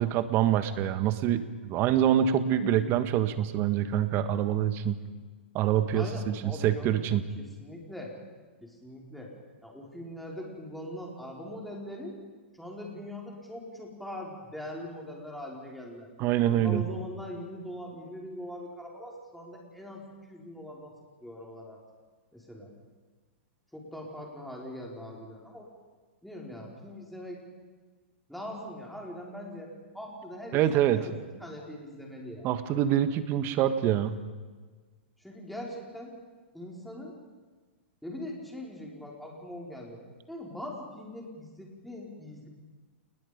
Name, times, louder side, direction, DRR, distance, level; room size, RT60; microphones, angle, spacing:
voice 1, 0.0-5.0 5.5-7.2 16.2-16.8 30.5-31.1 32.4-34.2, right 10 dB, 35° right, 11 dB, 1.5 m, -25 dB
voice 2, 5.9-7.0 7.4-8.1 8.6-9.3 9.6-12.2 12.6-16.1 16.4-20.9 21.2-21.8 22.3-22.7 23.7-25.7 26.2-27.4 28.3-30.6 30.9-31.1 31.4-32.5 35.2-36.1 36.5-37.1 38.0-40.0 40.3-42.5, left 1 dB, ahead, -2 dB, 5.0 m, -41 dB
29.0 x 20.5 x 5.3 m, 1.4 s
hypercardioid pair, 125°, 6 cm